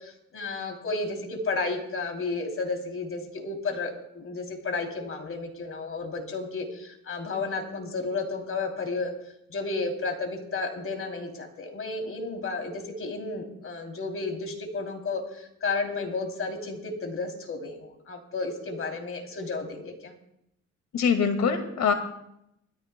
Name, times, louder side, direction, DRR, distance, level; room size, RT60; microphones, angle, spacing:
voice 1, 0.0-9.1 9.5-20.1, left 3 dB, 45° left, 2 dB, 3.3 m, -32 dB
voice 2, 20.9-21.9, left 6 dB, 65° left, 5 dB, 2.2 m, -23 dB
21.0 x 14.0 x 2.3 m, 0.79 s
cardioid pair, 90°, 30 cm